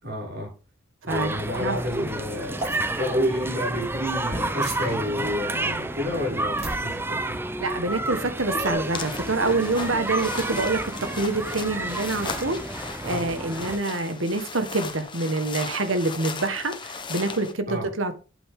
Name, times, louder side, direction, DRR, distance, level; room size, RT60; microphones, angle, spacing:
voice 1, 0.0-0.5 1.0-7.4 13.0-13.3 17.7-17.9, left 1 dB, 55° right, 6.4 m, -30 dB
sound 1, 1.1-13.8, right 2 dB, 10° right, 0.7 m, -30 dB
voice 2, 1.1-2.1 7.6-18.2, right 2 dB, 80° right, 1.6 m, -27 dB
sound 2, 2.6-2.8 4.6-5.0 6.6-6.8 8.6-8.8, right 2 dB, 35° right, 6.6 m, -33 dB
sound 3, 8.9-17.5, left 4 dB, 25° left, 1.2 m, -37 dB
11.0 x 8.0 x 3.7 m
head